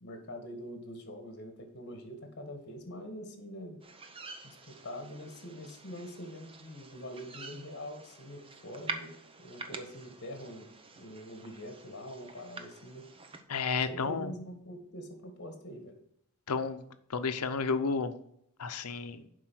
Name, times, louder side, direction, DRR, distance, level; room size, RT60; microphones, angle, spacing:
voice 1, 0.0-3.8 4.4-9.1 9.4-10.7 11.0-13.1 13.7-15.9, equal, 50° left, 5 dB, 1.7 m, -44 dB
sound 1, 3.8-13.4, right 3 dB, 25° right, 0.8 m, -47 dB
voice 2, 13.5-14.3 16.5-16.8 17.1-18.1 18.6-19.2, left 5 dB, 85° left, 10 dB, 0.7 m, -31 dB
7.5 x 5.2 x 6.3 m, 0.72 s
head